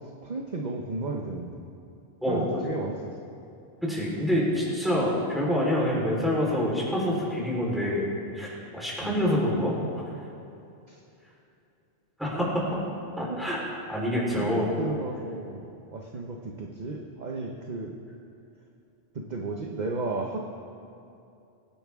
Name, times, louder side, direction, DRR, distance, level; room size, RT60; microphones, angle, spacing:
voice 1, 0.2-1.6 2.3-3.1 9.0-9.3 10.9-11.0 12.3-12.4 13.3-13.4 14.3-14.5 14.8-17.9 19.1-20.4, right 3 dB, 40° right, 0 dB, 1.0 m, -34 dB
voice 2, 2.2-2.6 3.8-8.1 8.3-10.0 12.2-12.5 13.2-13.6 13.9-14.7, left 1 dB, ahead, -6 dB, 4.0 m, -26 dB
24.5 x 9.9 x 3.6 m, 2.7 s
omnidirectional pair, 1.2 m